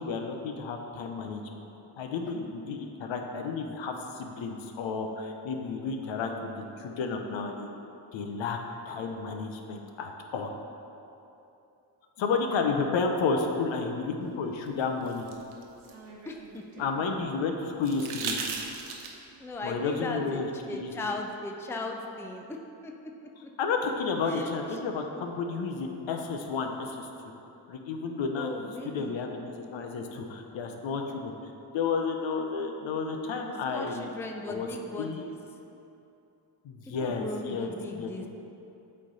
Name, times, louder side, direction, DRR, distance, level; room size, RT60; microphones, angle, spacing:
voice 1, 0.0-1.4 2.0-7.7 8.1-8.6 8.9-10.5 12.2-15.3 16.8-18.4 19.6-20.9 23.6-27.1 27.7-29.4 29.7-31.3 31.7-34.1 34.5-34.7 35.0-35.2 36.6-37.7 38.0-38.1, left 4 dB, 65° left, 4 dB, 0.8 m, -31 dB
sound 1, 14.7-16.9 17.8-19.4 21.0-21.1, right 5 dB, 75° right, 0.9 m, -37 dB
voice 2, 16.2-16.6 19.1-23.0 23.4-23.5 24.3-24.8 28.3-29.3 33.7-35.3 36.8-38.3, left 2 dB, 5° left, 2 dB, 0.5 m, -38 dB
8.3 x 3.3 x 4.0 m, 2.9 s
supercardioid pair, 55°, 49 cm